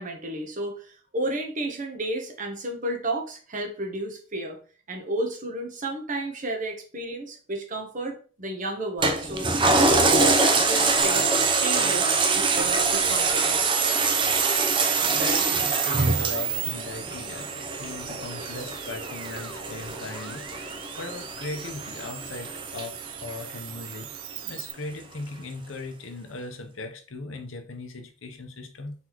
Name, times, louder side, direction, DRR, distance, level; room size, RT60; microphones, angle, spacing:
voice 1, 0.0-4.6 4.9-11.3 11.6-13.7, right 1 dB, 40° right, 2 dB, 0.9 m, -32 dB
Toilet flush, 9.0-23.8 24.3-24.4, right 3 dB, 25° right, 0.5 m, -25 dB
sound 1, 11.0-24.7, right 14 dB, 90° right, 0.4 m, -32 dB
voice 2, 14.5-24.1 24.4-28.9, left 3 dB, 70° left, 5 dB, 0.8 m, -38 dB
4.0 x 3.6 x 3.0 m, 0.40 s
head